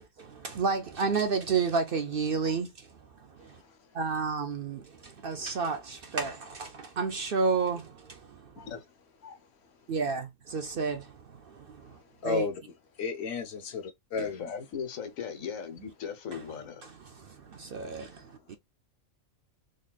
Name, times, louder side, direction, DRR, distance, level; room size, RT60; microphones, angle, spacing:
voice 1, 0.0-2.9 3.2-3.6 3.9-8.7 9.9-12.5 16.3-16.4 16.8-18.6, right 5 dB, 55° right, 0.6 m, -32 dB
voice 2, 12.2-12.6 13.0-14.5, left 5 dB, 55° left, 1.0 m, -33 dB
voice 3, 14.1-16.9, left 7 dB, 85° left, 1.3 m, -38 dB
3.8 x 3.2 x 2.3 m
omnidirectional pair, 1.4 m